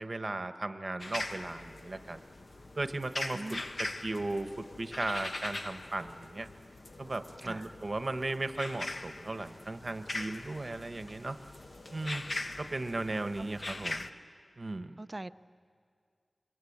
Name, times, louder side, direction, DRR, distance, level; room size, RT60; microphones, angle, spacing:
voice 1, 0.0-2.2 2.8-3.4 3.8-6.5 7.0-11.4 11.9-12.3 12.6-14.1 14.6-15.0, right 2 dB, 50° right, 9 dB, 1.2 m, -36 dB
sound 1, 1.0-14.1, left 2 dB, 55° left, 1.0 m, -41 dB
voice 2, 3.3-3.6 7.4-7.7 13.4-13.5 15.0-15.3, right 2 dB, 30° right, 13 dB, 0.6 m, -41 dB
27.0 x 23.5 x 8.7 m, 2.2 s
wide cardioid pair, 75°, 0 cm